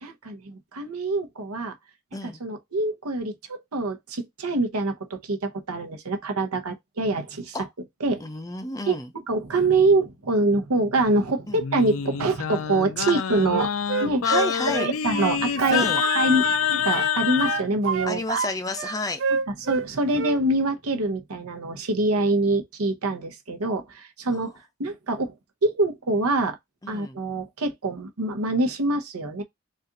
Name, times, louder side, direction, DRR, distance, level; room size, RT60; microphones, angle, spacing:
voice 1, 0.0-1.7 2.4-7.6 8.0-8.2 8.9-9.0 9.3-13.7 14.0-14.3 14.9-18.4 19.6-24.5 24.8-25.3 25.6-26.6 26.9-29.4, right 2 dB, 85° right, 0.9 m, -25 dB
voice 2, 8.2-9.1 11.5-11.6 14.2-14.9 15.7-16.0 18.1-19.2 24.3-24.5 26.8-27.2, left 2 dB, 15° left, 0.5 m, -30 dB
Singing, 11.6-17.6, left 8 dB, 70° left, 0.4 m, -26 dB
Wind instrument woodwind instrument, 13.5-16.6 16.9-18.5 18.8-19.9 20.1-20.4, right 6 dB, 55° right, 0.3 m, -28 dB
4.2 x 2.5 x 3.7 m
head